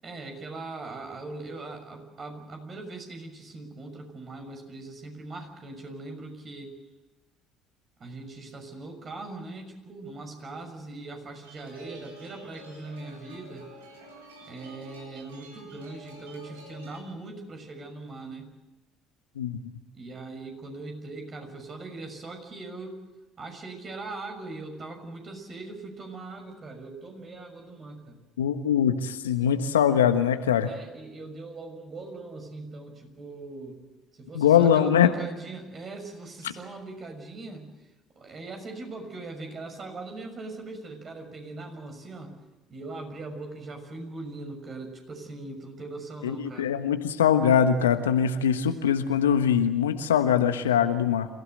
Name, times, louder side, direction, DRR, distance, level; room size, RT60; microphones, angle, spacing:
voice 1, 0.0-6.7 8.0-13.7 14.5-18.5 19.9-23.0 23.4-28.2 30.6-33.8 34.1-37.9 38.1-42.4 42.7-46.7, right 3 dB, 40° right, 4 dB, 6.2 m, -40 dB
sound 1, 11.4-17.0, right 1 dB, 85° right, 4.5 m, -49 dB
voice 2, 19.4-19.7 28.4-30.7 34.3-35.1 46.2-51.3, left 8 dB, 85° left, 8 dB, 1.3 m, -22 dB
28.5 x 16.0 x 8.0 m, 1.1 s
hypercardioid pair, 55°, 0 cm